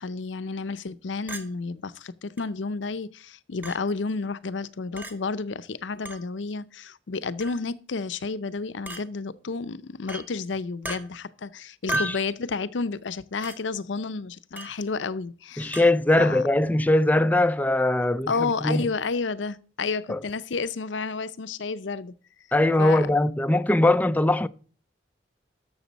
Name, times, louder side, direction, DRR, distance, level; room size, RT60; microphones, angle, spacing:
voice 1, 0.0-15.8 16.2-16.4 18.3-22.1 22.8-23.1, left 4 dB, 80° left, 0.6 m, -31 dB
Chink clink, 1.3-1.5 2.4-2.5 3.6-3.8 5.0-5.1 6.1-6.2 7.4-7.6 8.9-9.0 10.1-10.3 10.8-11.0 11.9-12.2 13.4-13.6 14.6-14.8 15.7-15.9, right 1 dB, 10° right, 1.2 m, -33 dB
voice 2, 15.6-18.9 20.1-20.2 22.5-24.5, left 1 dB, 10° left, 0.4 m, -21 dB
12.5 x 6.9 x 4.0 m
head